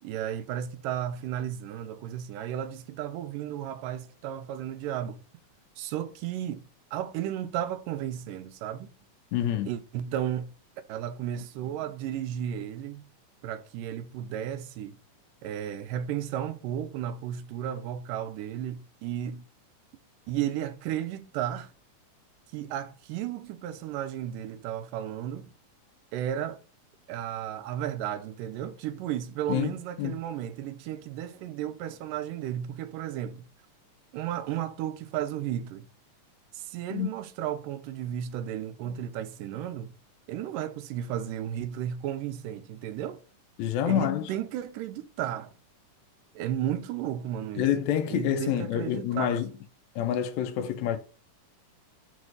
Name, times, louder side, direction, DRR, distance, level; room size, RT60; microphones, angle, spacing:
voice 1, 0.0-5.2 5.8-6.6 6.9-8.9 9.7-10.5 10.9-13.0 13.4-15.0 15.4-19.5 20.3-21.7 22.5-25.5 26.1-26.6 27.1-33.5 34.1-35.9 36.5-39.9 40.3-43.2 43.8-45.5 46.4-47.7 48.1-49.3, right 10 dB, 85° right, 2.2 m, -34 dB
voice 2, 9.3-9.7 29.5-30.2 36.9-37.1 43.6-44.3 47.6-49.5 50.0-51.0, left 10 dB, 75° left, 1.9 m, -27 dB
6.3 x 3.1 x 5.3 m
omnidirectional pair, 3.8 m